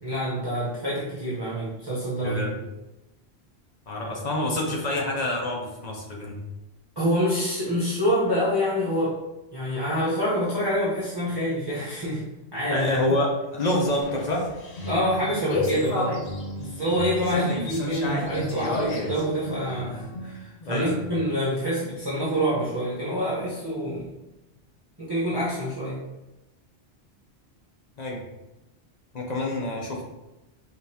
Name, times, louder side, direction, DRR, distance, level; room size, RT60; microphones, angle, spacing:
voice 1, 0.0-2.5 7.0-9.2 9.5-12.2 12.5-13.2 14.8-16.2 16.6-24.1 25.0-26.0, equal, 25° right, -8 dB, 0.8 m, -27 dB
voice 2, 2.2-2.5 3.9-6.4 12.7-14.5 16.6-16.7 20.6-21.1 28.0-28.2 29.1-30.0, left 1 dB, 45° left, -1 dB, 0.8 m, -27 dB
sound 1, 13.5-20.4, left 1 dB, 85° left, 1.1 m, -30 dB
5.1 x 2.5 x 2.7 m, 0.99 s
omnidirectional pair, 1.1 m